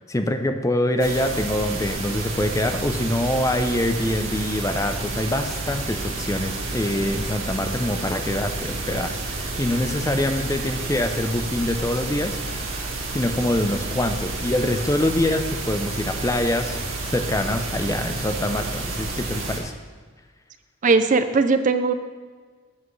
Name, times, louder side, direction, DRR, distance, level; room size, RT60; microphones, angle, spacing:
voice 1, 0.0-12.4 13.1-16.8 17.1-19.7, left 1 dB, 15° left, 7 dB, 0.5 m, -25 dB
sound 1, 1.0-19.6, right 2 dB, 80° right, 1.6 m, -30 dB
voice 2, 20.8-21.9, right 4 dB, 40° right, 10 dB, 0.4 m, -19 dB
14.0 x 7.5 x 3.2 m, 1.5 s
head